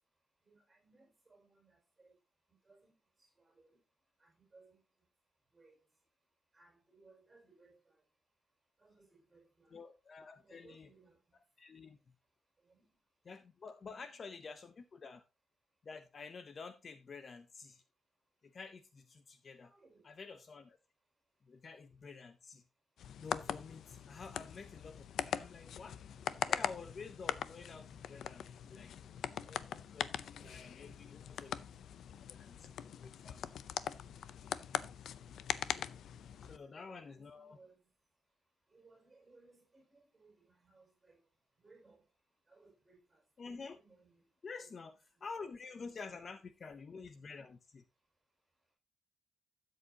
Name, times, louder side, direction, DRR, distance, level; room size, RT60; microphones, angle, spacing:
voice 1, 0.4-2.1 2.6-2.9 3.4-3.8 4.2-4.8 5.5-5.7 6.5-7.9 8.8-9.8 10.3-11.2 12.6-12.8 13.8-14.5 19.6-20.1 30.4-31.0 31.4-31.5 36.4-37.8 38.7-41.2 41.6-42.0 42.5-43.2 43.6-44.3 44.6-44.8 45.6-46.4 47.0-47.3, right 3 dB, 15° right, 5.9 m, -65 dB
voice 2, 9.7-10.9 11.6-12.0 13.2-15.2 15.8-17.8 18.4-19.7 20.0-20.8 21.5-22.6 23.2-26.0 26.4-28.9 29.5-31.7 32.1-33.5 36.4-37.6 43.4-43.8 44.4-44.9 45.2-47.8, left 4 dB, 35° left, 0.6 m, -50 dB
sound 1, 23.0-36.6, left 9 dB, 80° left, 0.5 m, -41 dB
12.5 x 7.6 x 2.8 m
wide cardioid pair, 175°, 0 cm